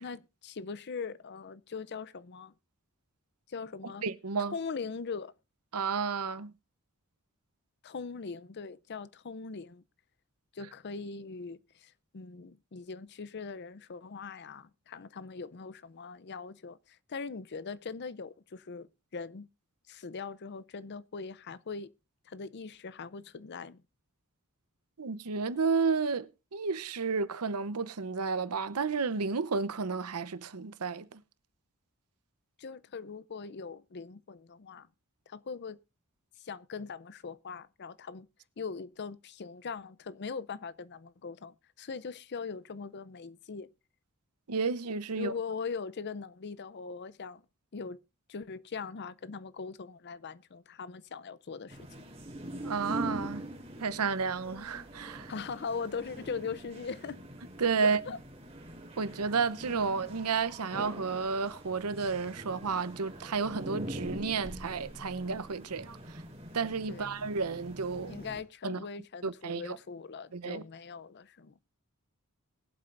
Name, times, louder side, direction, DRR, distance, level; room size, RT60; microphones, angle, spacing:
voice 1, 0.0-2.5 3.5-4.0 4.4-5.3 7.8-9.8 10.5-19.5 19.9-21.9 22.3-23.8 32.6-34.9 35.3-35.8 36.4-38.3 38.6-43.7 45.1-47.4 47.7-48.0 48.3-51.9 55.3-57.2 57.8-58.2 66.9-67.1 68.0-71.5, left 5 dB, 50° left, 0.5 m, -41 dB
voice 2, 4.0-4.5 5.7-6.5 25.0-31.2 44.5-45.3 52.6-53.4 53.8-55.3 57.6-58.0 59.0-66.0 66.5-68.2 68.6-68.8 69.2-69.8 70.3-70.6, right 5 dB, 90° right, 0.8 m, -31 dB
sound 1, 51.7-68.4, right 1 dB, 30° right, 3.7 m, -44 dB
21.5 x 7.8 x 2.5 m
head